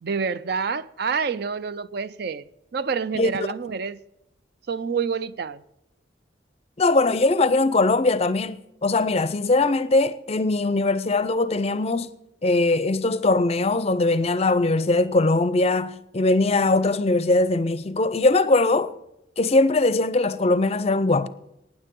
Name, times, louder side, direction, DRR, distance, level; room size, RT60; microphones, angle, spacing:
voice 1, 0.0-2.5 2.7-4.0 4.7-5.6, right 5 dB, 55° right, 0.5 m, -27 dB
voice 2, 6.8-12.1 12.4-18.9 19.4-21.3, left 2 dB, 30° left, 0.5 m, -21 dB
19.0 x 9.8 x 3.7 m
head